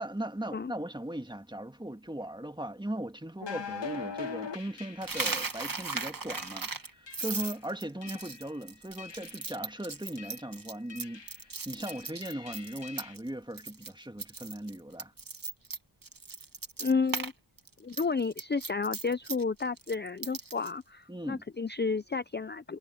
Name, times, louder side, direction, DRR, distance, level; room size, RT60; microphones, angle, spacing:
voice 1, 0.0-6.7 7.0-11.2 11.7-15.1 21.1-21.4, right 1 dB, 10° right, 1.8 m, -38 dB
sound 1, 3.4-5.7 6.3-6.5 7.1-7.6 8.0-8.5 9.0-9.5 10.2-10.5 10.9-11.4 11.9-13.2, left 6 dB, 75° left, 2.3 m, -42 dB
Coin (dropping), 5.0-13.3 13.6-13.9 14.2-17.3 17.6-20.7, right 4 dB, 50° right, 1.9 m, -37 dB
voice 2, 16.8-17.3 17.8-22.8, left 4 dB, 25° left, 0.6 m, -31 dB
wide cardioid pair, 65°, 44 cm